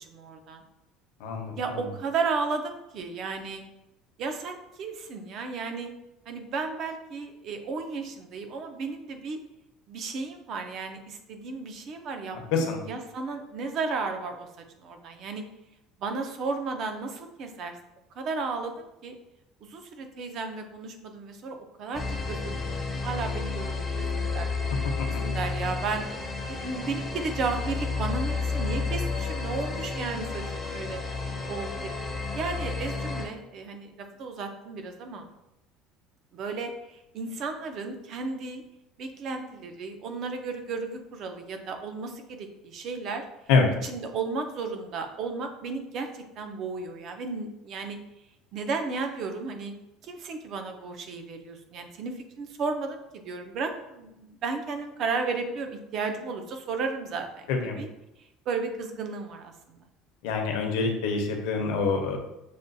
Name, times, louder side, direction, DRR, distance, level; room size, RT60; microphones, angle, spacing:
voice 1, 0.1-0.6 1.6-3.6 4.2-5.9 6.3-9.4 9.9-14.5 14.8-15.5 16.0-17.7 18.1-19.1 19.6-24.9 25.2-26.1 26.5-31.0 31.5-31.9 32.3-35.3 36.3-38.6 39.0-43.2 43.8-48.0 48.5-49.7 50.0-57.9 58.5-59.8, right 4 dB, 35° right, 6 dB, 0.5 m, -34 dB
voice 2, 1.2-1.8 12.5-12.8 43.5-43.7 57.5-57.8 60.2-62.2, left 4 dB, 75° left, 3 dB, 0.7 m, -25 dB
sound 1, 21.9-33.3, left 4 dB, 15° left, 0.6 m, -31 dB
6.5 x 2.2 x 2.6 m, 0.91 s
cardioid pair, 180°, 0 cm